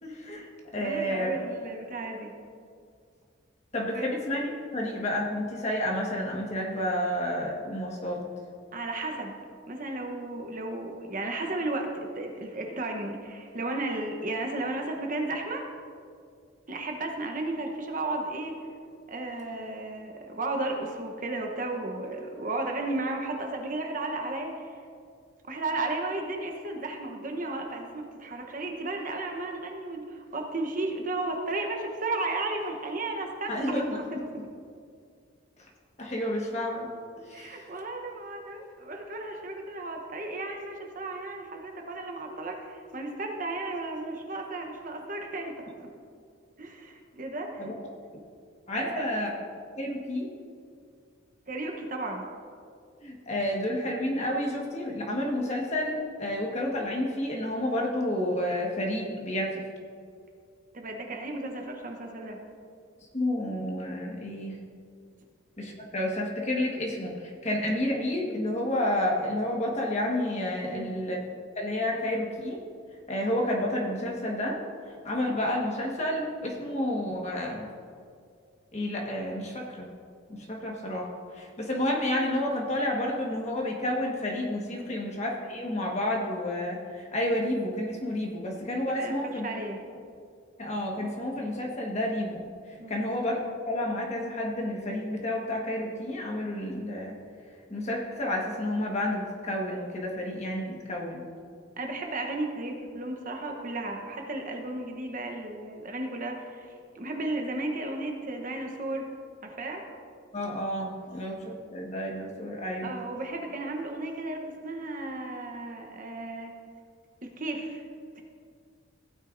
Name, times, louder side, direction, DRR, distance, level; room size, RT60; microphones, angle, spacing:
voice 1, 0.0-1.3 3.7-8.2 33.5-34.0 36.0-36.9 37.3-37.6 47.6-47.7 48.7-49.3 49.8-50.3 53.0-59.6 63.1-64.6 65.6-71.2 71.5-72.6 73.1-74.5 75.0-77.7 78.7-79.9 80.3-81.1 81.3-89.4 90.6-92.4 92.9-93.4 93.6-97.2 97.7-101.3 110.3-112.9, left 1 dB, 35° left, -1 dB, 1.4 m, -30 dB
voice 2, 0.8-2.3 3.9-4.1 8.7-9.3 9.7-15.7 16.7-18.6 19.1-24.8 25.4-34.5 37.3-45.7 46.6-47.7 48.8-49.1 51.5-52.2 60.7-62.4 70.6-71.0 84.8-84.9 88.9-89.8 92.8-92.9 101.8-109.1 109.4-109.8 112.8-116.5 117.2-117.9 118.2-118.3, right 2 dB, 40° right, 2 dB, 0.9 m, -34 dB
16.0 x 9.0 x 2.6 m, 2.2 s
head